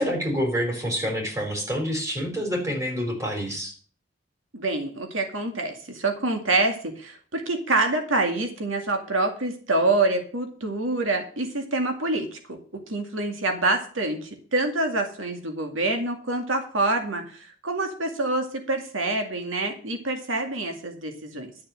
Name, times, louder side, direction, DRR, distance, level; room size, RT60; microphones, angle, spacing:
voice 1, 0.0-3.7, equal, 15° right, 2 dB, 4.0 m, -27 dB
voice 2, 4.5-12.6 12.9-21.5, right 2 dB, 85° right, 4 dB, 2.2 m, -26 dB
12.0 x 6.8 x 7.7 m, 0.43 s
head